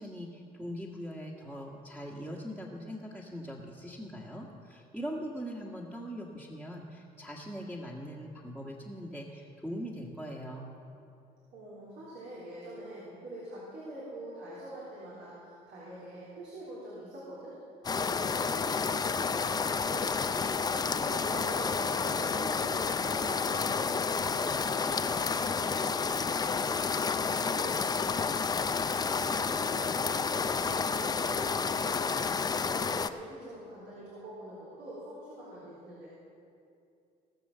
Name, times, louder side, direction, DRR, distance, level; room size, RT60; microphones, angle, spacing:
voice 1, 0.0-10.7, equal, 5° right, -5 dB, 1.5 m, -41 dB
voice 2, 11.5-17.6 18.0-20.1 20.6-26.8 27.3-28.5 29.0-32.3 32.6-36.1, right 1 dB, 75° right, -8 dB, 3.6 m, -44 dB
sound 1, 17.8-33.1, left 5 dB, 25° left, 0.5 m, -30 dB
18.5 x 6.9 x 6.7 m, 2.5 s
cardioid pair, 110°, 17 cm